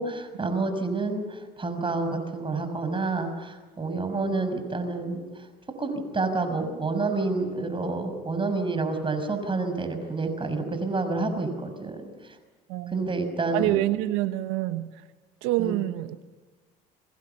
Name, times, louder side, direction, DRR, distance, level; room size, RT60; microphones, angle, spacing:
voice 1, 0.0-5.2 5.8-12.4 12.9-13.8 15.6-15.8, right 3 dB, 25° right, 8 dB, 6.0 m, -29 dB
voice 2, 12.7-13.1 13.5-14.9 15.4-16.2, right 16 dB, 80° right, 11 dB, 1.2 m, -27 dB
27.0 x 24.0 x 7.1 m, 1.3 s
supercardioid pair, 75°, 21 cm